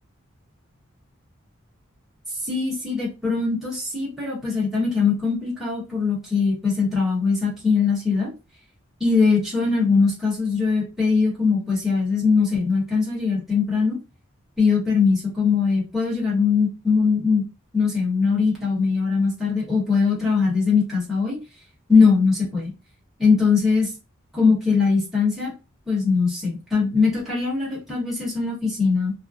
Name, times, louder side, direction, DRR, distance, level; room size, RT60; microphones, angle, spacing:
voice 1, 2.4-8.3 9.0-14.0 14.6-17.4 17.7-21.4 21.9-22.7 23.2-23.9 24.3-25.5 25.9-29.1, left 5 dB, ahead, -6 dB, 0.9 m, -21 dB
2.3 x 2.0 x 2.6 m, 0.29 s
head